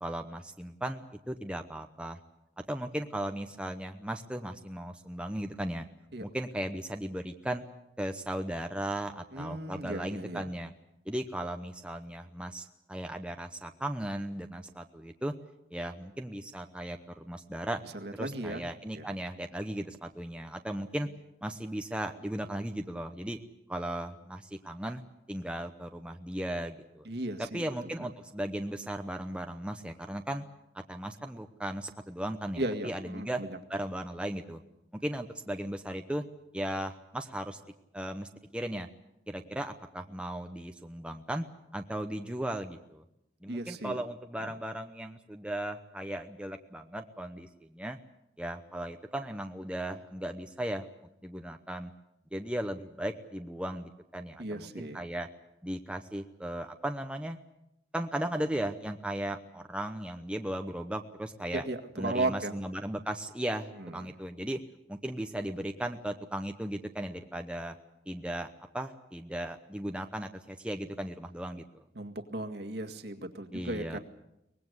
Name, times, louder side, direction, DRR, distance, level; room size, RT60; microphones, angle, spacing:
voice 1, 0.0-2.2 2.7-5.9 6.2-7.6 8.0-10.7 11.1-15.3 15.7-17.8 18.2-21.1 21.4-23.4 23.7-25.0 25.3-27.1 27.5-30.4 30.7-33.4 33.7-34.6 35.0-36.2 36.5-37.6 37.9-38.9 39.3-41.4 41.7-43.0 43.4-48.0 48.4-50.9 51.2-51.9 52.3-55.3 55.6-57.4 57.9-61.6 62.0-64.6 64.9-67.7 68.1-68.5 68.7-71.7 73.5-74.0, right 1 dB, 5° right, 5 dB, 0.9 m, -36 dB
voice 2, 9.3-10.5 17.8-18.6 18.9-19.1 27.0-28.1 32.6-33.6 43.5-44.0 44.4-44.5 54.4-55.0 61.5-62.5 63.8-64.1 71.9-74.0, right 2 dB, 60° right, 5 dB, 1.9 m, -36 dB
24.0 x 20.0 x 8.0 m, 0.85 s
head